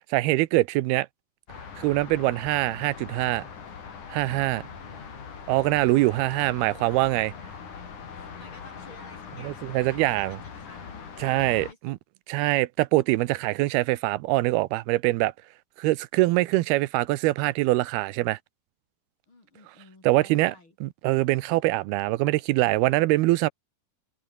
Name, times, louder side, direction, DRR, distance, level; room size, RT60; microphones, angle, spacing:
voice 1, 0.1-1.1 1.8-3.4 4.1-4.6 5.5-7.3 9.4-10.4 11.2-12.0 12.3-15.3 15.8-18.4 20.0-20.5 20.8-23.5, right 19 dB, 90° right, 2.7 m, -23 dB
sound 1, 1.5-11.7, left 6 dB, 55° left, 4.9 m, -42 dB
voice 2, 4.3-5.4 6.3-6.6 8.1-12.0 19.3-20.8, left 2 dB, 30° left, 5.8 m, -53 dB
omnidirectional pair, 4.4 m